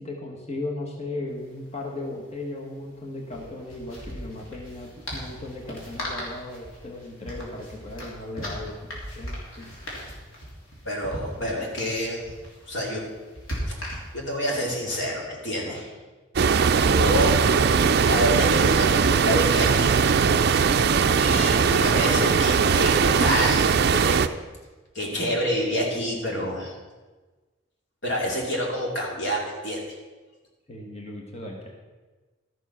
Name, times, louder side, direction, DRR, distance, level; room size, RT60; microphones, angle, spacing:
voice 1, 0.0-8.8 9.1-9.7 15.6-15.8 30.7-31.7, left 2 dB, 30° left, 0 dB, 1.4 m, -36 dB
sound 1, 1.3-1.4 1.6-1.7 3.2-14.4, equal, 85° left, 3.3 m, -38 dB
voice 2, 10.8-12.3 12.7-13.0 14.1-15.8 16.9-17.4 18.0-20.2 21.2-23.6 23.9-24.3 24.9-26.7 28.0-29.8, equal, 60° left, -2 dB, 2.6 m, -28 dB
sound 2, 16.4-24.3, right 5 dB, 50° right, 0.4 m, -20 dB
12.5 x 7.2 x 5.7 m, 1.3 s
head